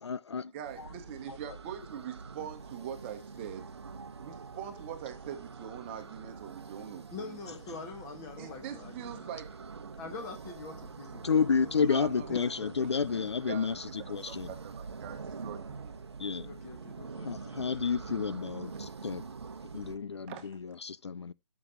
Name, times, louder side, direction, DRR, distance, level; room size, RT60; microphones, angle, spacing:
voice 1, 0.0-0.5 0.8-0.9 1.3-1.4 11.2-14.5 16.2-16.5 17.2-19.2 19.7-21.3, left 6 dB, 65° left, 0.4 m, -31 dB
voice 2, 0.5-3.7 4.2-7.4 8.4-9.6 11.8-12.4 12.8-15.9 20.3-20.6, right 9 dB, 25° right, 1.3 m, -43 dB
sound 1, 0.6-20.0, right 5 dB, 60° right, 1.0 m, -45 dB
voice 3, 7.1-9.3 10.0-11.7 12.3-13.2 16.5-17.4 17.7-18.3, left 4 dB, 15° left, 1.7 m, -45 dB
13.5 x 6.0 x 2.8 m
figure-of-eight pair, 140°, 16 cm